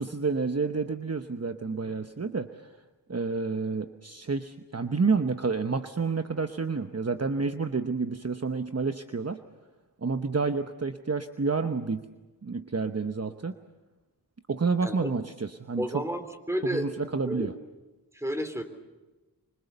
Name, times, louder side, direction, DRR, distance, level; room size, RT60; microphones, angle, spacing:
voice 1, 0.0-2.8 3.1-9.4 10.0-12.1 12.4-13.5 14.5-16.0 16.6-17.5, right 4 dB, 40° right, 7 dB, 1.0 m, -29 dB
voice 2, 15.8-16.9 17.3-17.5 18.1-18.6, equal, 5° right, 7 dB, 3.4 m, -31 dB
25.5 x 25.5 x 7.0 m, 1.1 s
wide cardioid pair, 60°, 40 cm